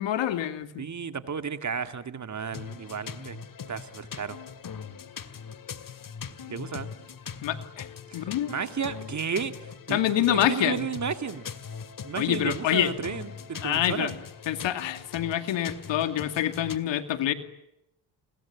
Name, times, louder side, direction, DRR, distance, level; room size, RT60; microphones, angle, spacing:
voice 1, 0.0-0.8 7.4-8.5 9.9-10.8 12.2-12.9 13.6-14.1 14.5-17.3, left 12 dB, 80° left, 10 dB, 2.5 m, -26 dB
voice 2, 0.8-4.4 6.4-6.9 8.1-11.5 12.0-14.1, right 6 dB, 40° right, 10 dB, 2.2 m, -33 dB
sound 1, 2.5-16.8, left 7 dB, 45° left, 2.3 m, -41 dB
29.5 x 23.0 x 8.5 m, 0.83 s
cardioid pair, 80°, 44 cm